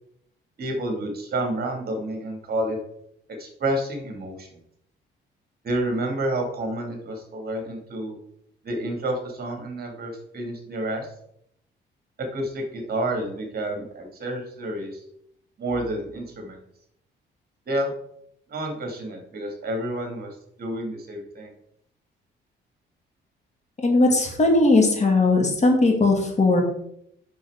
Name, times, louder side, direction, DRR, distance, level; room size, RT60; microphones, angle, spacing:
voice 1, 0.6-2.8 3.4-4.5 5.6-8.2 8.6-11.1 12.2-15.0 15.6-16.6 17.7-17.9 18.5-20.3 20.6-21.5, right 1 dB, 50° right, 3 dB, 2.3 m, -29 dB
voice 2, 23.8-26.6, left 2 dB, 35° left, 1 dB, 2.2 m, -18 dB
7.0 x 6.3 x 3.7 m, 0.73 s
cardioid pair, 90°, 20 cm